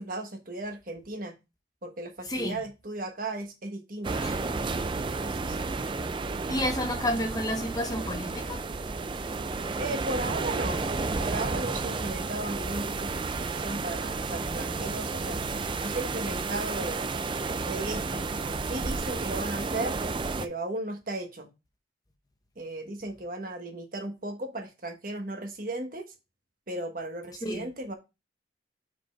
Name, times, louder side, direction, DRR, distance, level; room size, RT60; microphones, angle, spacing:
voice 1, 0.0-1.3 1.8-4.3 5.2-5.7 9.8-10.8 11.2-15.4 15.8-17.0 17.5-18.3 18.6-20.0 20.4-21.5 22.6-26.1 26.7-27.9, right 2 dB, 45° right, 1.2 m, -36 dB
voice 2, 2.3-2.6 4.2-4.3 6.5-8.6 27.4-27.7, left 1 dB, 20° left, 0.7 m, -30 dB
sound 1, 4.0-20.5, right 3 dB, 25° right, 0.3 m, -32 dB
5.3 x 4.5 x 4.4 m
head